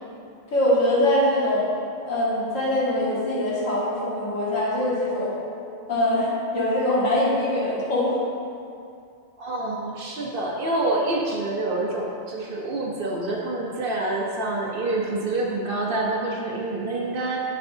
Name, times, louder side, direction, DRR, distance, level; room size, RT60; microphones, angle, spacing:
voice 1, 0.5-1.7 2.1-5.4 5.9-8.2, left 1 dB, 85° left, -7 dB, 1.9 m, -23 dB
voice 2, 9.4-17.4, right 2 dB, 50° right, -2 dB, 0.9 m, -27 dB
7.5 x 6.9 x 2.7 m, 2.5 s
omnidirectional pair, 1.3 m